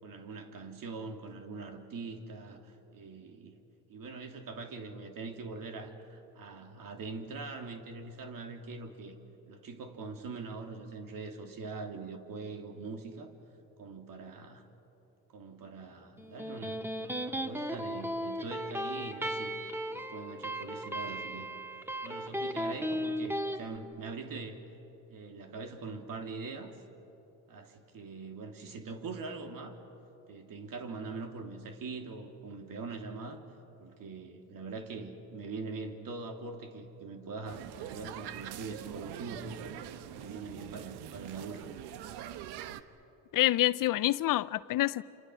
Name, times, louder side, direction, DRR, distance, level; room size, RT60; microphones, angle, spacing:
voice 1, 0.0-3.6 3.9-9.1 9.5-13.3 13.8-14.7 15.3-16.8 17.1-19.5 19.9-21.5 22.0-24.6 25.1-26.8 27.5-29.8 30.3-33.4 33.8-39.8 40.1-41.7, right 4 dB, 55° right, 3.1 m, -43 dB
Electric guitar, 16.2-23.6, equal, 5° right, 1.7 m, -36 dB
sound 1, 37.5-42.8, right 11 dB, 75° right, 1.2 m, -44 dB
voice 2, 43.3-45.0, left 15 dB, 55° left, 0.6 m, -27 dB
29.0 x 27.5 x 6.3 m
supercardioid pair, 85°, 39 cm